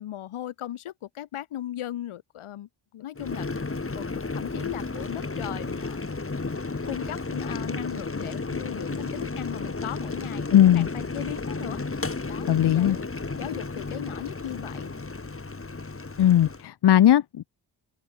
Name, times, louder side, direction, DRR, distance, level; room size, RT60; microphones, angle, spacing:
voice 1, 0.0-3.5 3.9-6.0 6.8-13.1 13.4-14.9, left 12 dB, 85° left, 3.7 m, -37 dB
Boiling, 3.2-16.7, left 3 dB, 25° left, 3.4 m, -33 dB
voice 2, 10.5-10.9 12.5-13.0 16.2-17.5, left 11 dB, 55° left, 0.8 m, -18 dB
supercardioid pair, 55°, 49 cm